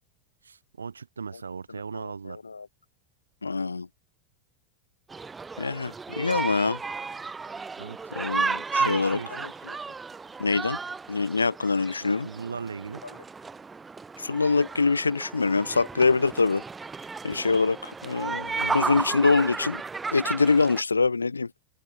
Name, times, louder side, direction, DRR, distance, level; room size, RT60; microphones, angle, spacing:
voice 1, 0.4-2.4 7.8-8.0 8.8-9.5 12.0-13.0, right 5 dB, 75° right, 1.7 m, -37 dB
voice 2, 1.9-2.7 3.4-3.9 5.6-6.8 8.1-9.5 10.4-10.8 11.1-12.3 14.2-16.6 17.2-19.8 20.1-21.5, left 4 dB, 80° left, 0.9 m, -25 dB
sound 1, 5.1-20.8, right 4 dB, 15° right, 1.6 m, -34 dB
open air
figure-of-eight pair, 85°, 0 cm